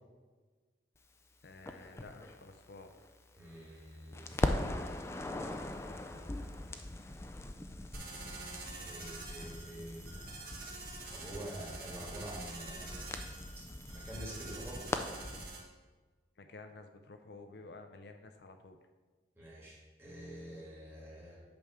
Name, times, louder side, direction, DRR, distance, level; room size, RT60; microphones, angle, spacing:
voice 1, 1.4-2.9 16.4-18.8, left 3 dB, 65° left, 7 dB, 0.5 m, -52 dB
Crackle, 1.7-3.8 4.1-15.5, left 1 dB, 15° left, 0.3 m, -40 dB
voice 2, 3.3-4.4 5.6-6.5 8.7-10.2 11.1-13.2 13.9-14.9 19.3-21.5, right 1 dB, 10° right, -5 dB, 2.1 m, -47 dB
sound 1, 7.9-15.6, right 3 dB, 55° right, 1.6 m, -47 dB
8.6 x 3.6 x 6.4 m, 1.3 s
head